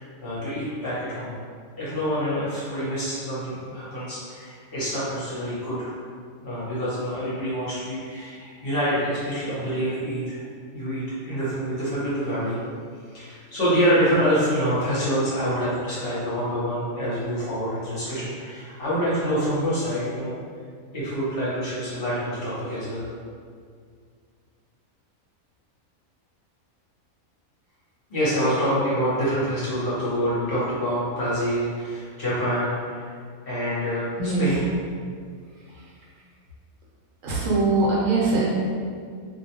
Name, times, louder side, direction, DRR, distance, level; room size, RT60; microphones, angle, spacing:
voice 1, 0.0-1.3 1.8-5.9 6.4-10.4 10.7-12.6 13.1-20.4 20.9-23.1 28.1-33.1 33.5-34.7, equal, 50° left, -10 dB, 0.8 m, -26 dB
voice 2, 34.2-34.6 35.6-36.0 37.2-38.5, right 3 dB, 65° right, -6 dB, 1.0 m, -23 dB
2.4 x 2.1 x 2.8 m, 2.1 s
omnidirectional pair, 1.6 m